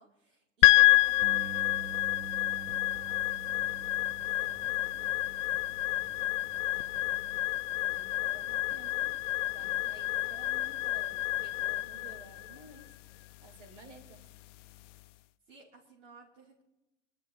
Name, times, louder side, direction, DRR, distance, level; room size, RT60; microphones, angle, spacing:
voice 1, 0.0-5.8 15.5-16.6, right 3 dB, 90° right, -5 dB, 3.0 m, -59 dB
sound 1, 0.6-15.0, left 19 dB, 75° left, 0.5 m, -29 dB
Bass guitar, 1.2-7.5, right 5 dB, 30° right, 0.8 m, -47 dB
voice 2, 6.6-7.3 7.7-9.1 9.5-12.9 13.4-14.2, right 3 dB, 70° right, 2 dB, 3.8 m, -54 dB
24.5 x 12.5 x 2.9 m, 0.97 s
hypercardioid pair, 90°, 36 cm